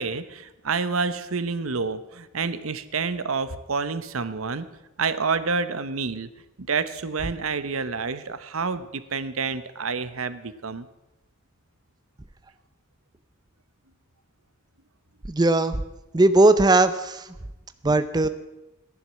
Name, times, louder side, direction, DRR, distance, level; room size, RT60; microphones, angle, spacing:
voice 1, 0.0-4.7 5.0-6.3 6.6-10.9, right 4 dB, 80° right, 14 dB, 0.9 m, -28 dB
voice 2, 15.3-15.8 16.1-17.3 17.8-18.3, right 2 dB, 20° right, 11 dB, 0.6 m, -18 dB
14.5 x 11.0 x 7.5 m, 0.99 s
head